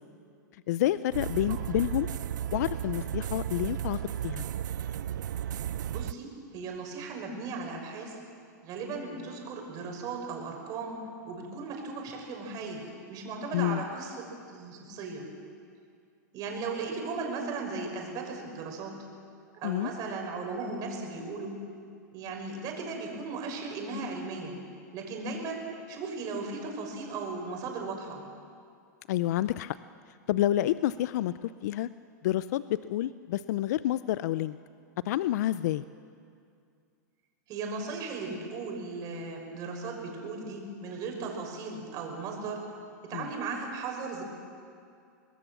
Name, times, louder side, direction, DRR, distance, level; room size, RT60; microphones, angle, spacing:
voice 1, 0.7-2.1 2.5-4.5 13.5-13.8 19.6-19.9 29.1-29.8 30.3-31.9 32.2-34.6 35.0-35.8 43.1-43.3, left 13 dB, 65° left, 15 dB, 0.5 m, -29 dB
sound 1, 1.1-6.1, right 10 dB, 80° right, 0.5 m, -34 dB
voice 2, 5.9-8.2 8.6-11.0 11.2-15.3 16.3-19.0 19.5-21.6 22.1-24.5 24.9-28.2 37.5-42.6 43.0-44.2, right 4 dB, 40° right, 2 dB, 6.0 m, -37 dB
26.0 x 20.5 x 7.3 m, 2.3 s
hypercardioid pair, 125°, 10 cm